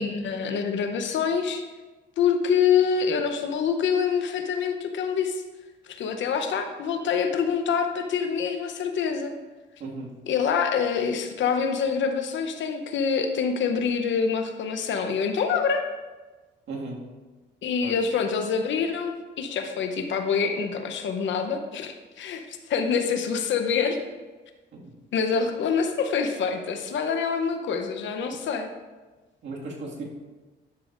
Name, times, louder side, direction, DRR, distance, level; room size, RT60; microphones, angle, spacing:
voice 1, 0.0-1.6 2.2-5.4 5.9-9.3 10.3-15.8 17.6-24.0 25.1-28.7, left 6 dB, 70° left, 6 dB, 0.9 m, -26 dB
voice 2, 9.8-10.1 16.7-17.1 17.8-17.9 24.7-24.9 29.4-30.0, right 3 dB, 65° right, -3 dB, 2.0 m, -36 dB
11.0 x 6.9 x 2.6 m, 1.2 s
cardioid pair, 90°, 20 cm